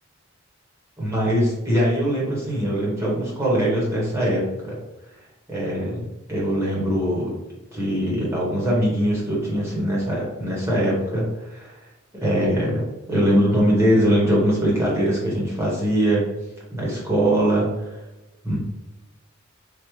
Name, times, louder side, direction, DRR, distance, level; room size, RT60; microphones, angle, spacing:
voice 1, 1.0-4.8 5.5-6.0 6.3-7.3 7.7-11.8 12.2-16.2 16.7-17.7 18.4-18.6, equal, 15° right, -6 dB, 0.9 m, -22 dB
3.4 x 2.0 x 3.0 m, 1.0 s
head